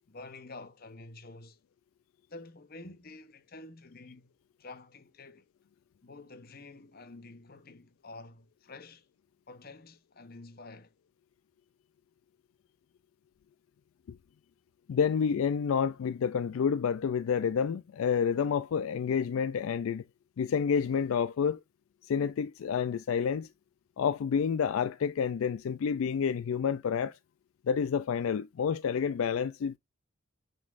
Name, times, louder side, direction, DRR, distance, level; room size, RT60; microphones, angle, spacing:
voice 1, 0.1-1.6 2.3-4.3 4.6-5.5 6.0-9.1 9.5-10.9, left 2 dB, 45° left, 0.9 m, -49 dB
voice 2, 14.9-20.0 20.4-21.6 22.0-23.5 24.0-27.1 27.7-29.8, left 7 dB, 75° left, 0.3 m, -29 dB
9.5 x 4.0 x 2.5 m
head